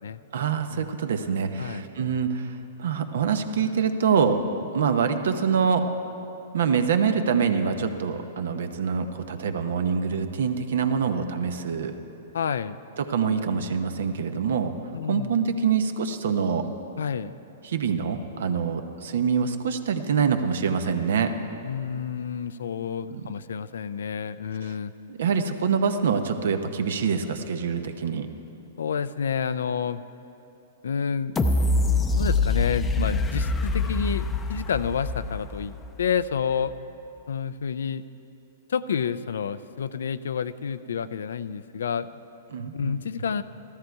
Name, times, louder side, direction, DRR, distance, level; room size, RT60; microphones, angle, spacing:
voice 1, 0.3-4.4 4.7-5.9 6.5-11.9 13.0-14.7 15.1-16.7 17.6-21.3 23.1-23.2 24.6-24.7 25.1-28.3 42.5-43.0, right 6 dB, 75° right, 8 dB, 0.9 m, -25 dB
voice 2, 12.3-12.8 14.9-15.4 17.0-17.4 21.6-24.9 28.8-30.0 30.8-31.4 32.2-36.7 37.3-38.1 38.7-42.2 42.7-43.4, left 7 dB, 80° left, 14 dB, 0.4 m, -29 dB
sound 1, 31.4-36.2 36.7-36.8, left 3 dB, 15° left, 0.6 m, -25 dB
14.0 x 13.5 x 4.6 m, 2.9 s
hypercardioid pair, 130°, 0 cm